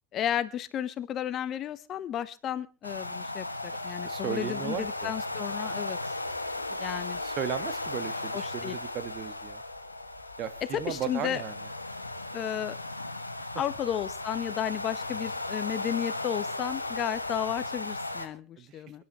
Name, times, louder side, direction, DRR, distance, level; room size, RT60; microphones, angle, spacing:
voice 1, 0.1-6.0 6.8-7.2 8.3-8.8 10.7-11.4 12.3-12.8 13.5-19.0, left 10 dB, 35° left, 15 dB, 0.9 m, -33 dB
sound 1, 2.8-18.3, left 2 dB, 85° left, 1.4 m, -36 dB
voice 2, 3.8-5.1 6.5-9.6 10.4-11.5 13.4-13.5 18.6-18.8, right 9 dB, 40° right, 10 dB, 1.6 m, -36 dB
28.5 x 10.5 x 3.1 m, 0.32 s
figure-of-eight pair, 80°, 0 cm